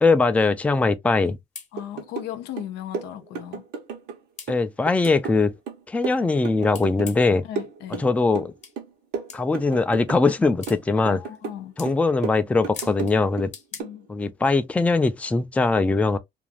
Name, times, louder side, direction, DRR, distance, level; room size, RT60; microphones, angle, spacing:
voice 1, 0.0-1.4 4.5-5.5 5.9-7.4 8.0-8.5 9.3-11.2 11.8-13.5 14.1-16.2, left 3 dB, 10° left, 0.3 m, -21 dB
sound 1, 1.2-1.3 1.6-1.7 2.5-2.6 3.1-3.2 4.4-4.5 5.0-5.2 6.7-7.4 8.6-8.7 9.3-9.4 10.6-10.8 11.3-11.5 11.8-11.9 12.7-13.2 13.5-13.8, left 6 dB, 40° left, 0.8 m, -39 dB
voice 2, 1.7-3.6 7.4-8.1 11.0-11.7 13.8-14.1, left 11 dB, 85° left, 0.6 m, -36 dB
sound 2, 1.8-2.3 2.6-4.2 4.5-7.3 7.6-8.5 8.8-10.4 10.7-11.6 11.9-13.5 13.8-14.0, right 5 dB, 85° right, 0.9 m, -34 dB
2.5 x 2.3 x 3.1 m
cardioid pair, 110°, 17 cm